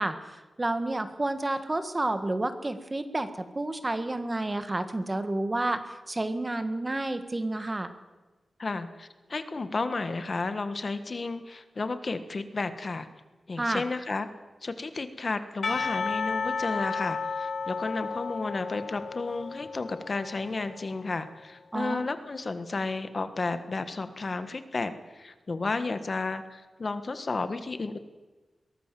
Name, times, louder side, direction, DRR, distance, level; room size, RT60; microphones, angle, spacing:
voice 1, 0.0-7.9 13.6-13.8 21.7-22.0, right 2 dB, 20° right, 9 dB, 1.6 m, -30 dB
voice 2, 8.6-13.1 13.5-14.3 14.6-28.0, left 3 dB, 40° left, 10 dB, 1.4 m, -32 dB
Percussion / Church bell, 15.6-20.9, left 4 dB, 60° left, 2.1 m, -33 dB
23.0 x 17.5 x 7.6 m, 1.3 s
wide cardioid pair, 155°, 0 cm